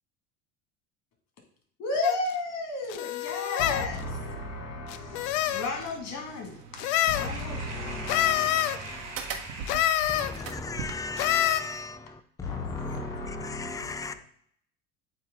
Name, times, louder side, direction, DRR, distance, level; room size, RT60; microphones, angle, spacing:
voice 1, 1.8-6.6 7.1-9.0 12.4-14.1, left 3 dB, 50° left, 2.3 m, -34 dB
sound 1, 2.0-2.2 2.9-3.9 4.9-5.7 6.8-7.3 8.1-8.8 9.7-10.3 11.2-11.6, left 12 dB, 80° left, 0.5 m, -26 dB
sound 2, 5.0-10.9, right 6 dB, 75° right, 1.1 m, -42 dB
voice 2, 6.7-10.6, right 3 dB, 50° right, 1.5 m, -42 dB
voice 3, 7.8-8.3 10.1-14.1, left 3 dB, 10° left, 0.4 m, -37 dB
8.5 x 3.1 x 3.8 m
supercardioid pair, 105°, 34 cm